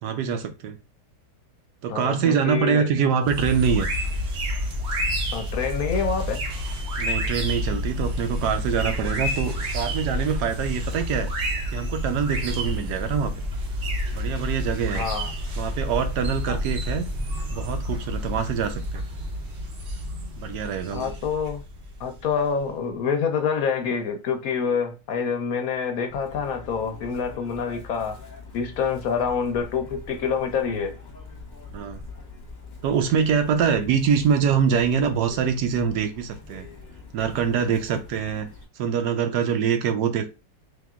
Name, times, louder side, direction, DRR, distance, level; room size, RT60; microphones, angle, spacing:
voice 1, 0.0-0.8 1.8-3.9 7.0-11.3 11.7-13.3 14.1-15.1 15.6-17.1 17.5-19.0 20.4-21.1 31.7-32.0 32.8-36.7 37.1-38.5 38.8-40.3, right 7 dB, 75° right, 1.2 m, -24 dB
voice 2, 1.9-2.9 5.3-6.4 14.9-15.3 16.5-16.6 20.9-21.6 22.0-28.2 28.5-31.0, left 6 dB, 65° left, 1.0 m, -27 dB
sound 1, 3.2-22.7, equal, 50° right, 0.9 m, -29 dB
Chirp tweet, 26.1-38.6, left 4 dB, 30° left, 1.0 m, -43 dB
3.6 x 3.0 x 3.6 m
omnidirectional pair, 1.9 m